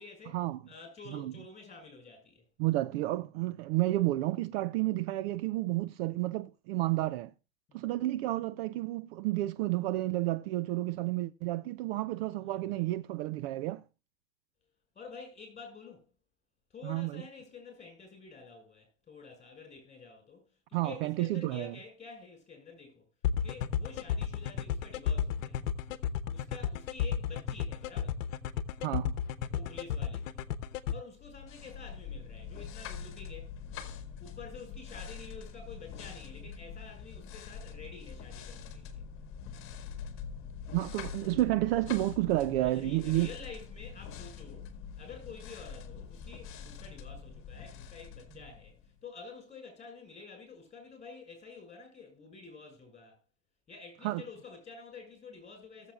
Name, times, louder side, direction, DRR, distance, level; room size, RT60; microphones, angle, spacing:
voice 1, 0.0-0.4 0.7-2.4 7.7-7.9 12.4-12.9 14.9-16.1 16.7-23.0 23.4-25.6 26.3-28.2 29.5-30.4 30.9-33.6 34.2-39.0 42.6-53.2 53.7-55.9, left 4 dB, 15° left, 5.9 m, -49 dB
voice 2, 2.6-7.3 7.7-13.8 16.8-17.2 20.7-21.7 28.8-29.2 40.7-43.3 54.0-54.2, right 17 dB, 50° right, 0.5 m, -31 dB
sound 1, 23.2-30.9, left 9 dB, 70° left, 1.0 m, -32 dB
sound 2, 31.2-49.0, left 7 dB, 30° left, 1.9 m, -44 dB
18.5 x 7.5 x 2.3 m
hypercardioid pair, 125°, 40 cm